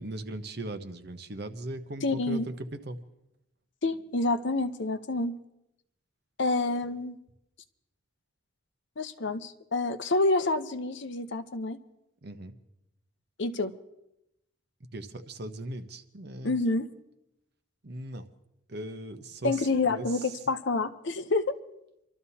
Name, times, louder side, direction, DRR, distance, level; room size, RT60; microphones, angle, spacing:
voice 1, 0.0-3.0 12.2-12.5 14.9-16.5 17.8-18.2 18.7-20.1, right 1 dB, 50° right, 8 dB, 0.9 m, -38 dB
voice 2, 2.0-2.5 3.8-5.4 6.4-7.2 9.0-11.8 13.4-13.7 16.4-16.9 19.4-21.6, left 2 dB, 60° left, 10 dB, 0.7 m, -28 dB
28.5 x 12.5 x 2.8 m, 0.85 s
head